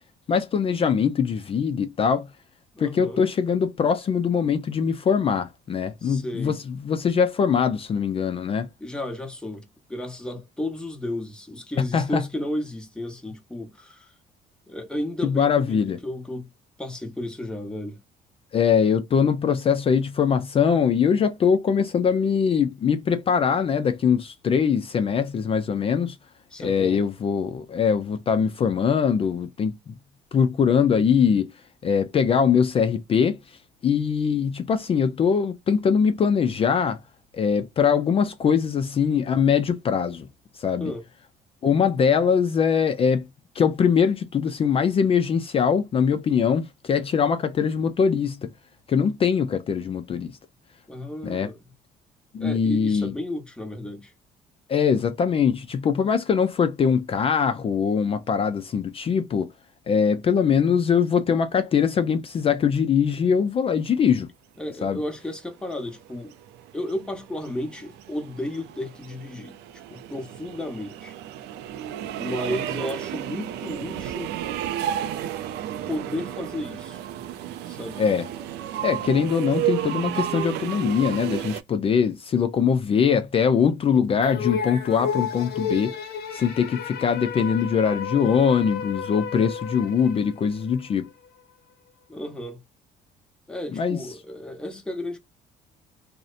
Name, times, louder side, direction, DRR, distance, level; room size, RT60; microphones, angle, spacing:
voice 1, 0.3-2.3 2.8-8.7 11.8-12.2 15.2-16.0 18.5-26.2 26.6-29.9 30.3-31.5 31.8-37.0 37.3-40.3 40.6-40.9 41.6-43.3 43.5-48.5 48.9-50.4 51.2-51.5 52.3-53.1 54.7-59.5 59.9-64.3 64.8-65.0 78.0-78.3 78.8-85.9 86.3-91.1 93.7-94.0, left 6 dB, 35° left, 0.4 m, -22 dB
voice 2, 2.7-3.2 6.0-6.6 8.8-14.1 14.7-16.5 16.8-18.0 26.5-27.0 40.8-41.1 50.9-51.7 52.4-54.1 64.6-66.3 66.7-69.6 69.9-71.2 72.1-74.3 75.9-77.0 77.6-78.0 92.1-92.6 93.5-95.2, left 1 dB, 5° left, 0.9 m, -33 dB
sound 1, 65.7-81.6, right 11 dB, 85° right, 0.4 m, -32 dB
sound 2, 84.2-90.8, left 6 dB, 70° left, 0.6 m, -32 dB
2.6 x 2.1 x 2.4 m
cardioid pair, 110°, 17 cm